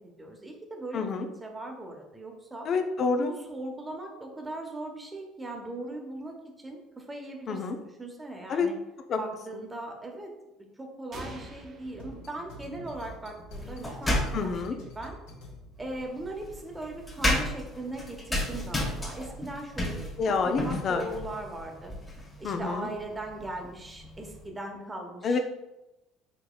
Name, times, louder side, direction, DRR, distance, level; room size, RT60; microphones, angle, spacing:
voice 1, 0.2-1.0 1.4-2.7 3.1-8.8 9.2-10.3 10.8-14.5 14.9-15.2 15.8-20.4 20.6-21.9 22.4-25.4, right 2 dB, 20° right, 2 dB, 1.0 m, -39 dB
voice 2, 0.9-1.3 2.6-3.3 7.5-7.8 8.5-8.7 9.1-9.2 14.3-14.8 20.2-21.1 22.4-22.9 25.2-25.4, left 4 dB, 50° left, 6 dB, 0.6 m, -28 dB
sound 1, 11.1-13.0, right 1 dB, 45° right, 1.0 m, -45 dB
sound 2, 11.8-16.0, equal, 75° left, 1.4 m, -47 dB
sound 3, 13.5-14.7 15.8-24.5, left 1 dB, 20° left, 1.4 m, -33 dB
5.1 x 3.4 x 2.3 m, 0.96 s
hypercardioid pair, 70°, 0 cm